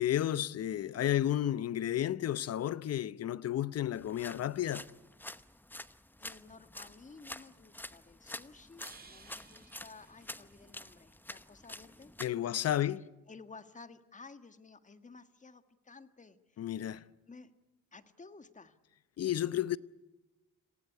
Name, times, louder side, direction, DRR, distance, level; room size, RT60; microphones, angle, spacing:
voice 1, 0.0-4.9 12.2-13.1 16.6-17.0 19.2-19.8, left 12 dB, 55° left, 0.8 m, -32 dB
sound 1, 3.9-12.3, left 1 dB, 5° left, 0.9 m, -48 dB
voice 2, 6.2-12.1 12.4-12.6 13.3-17.6 17.9-18.8, left 4 dB, 25° left, 1.6 m, -54 dB
sound 2, 8.8-11.1, right 4 dB, 30° right, 2.3 m, -58 dB
27.0 x 18.0 x 9.9 m
cardioid pair, 90°, 30 cm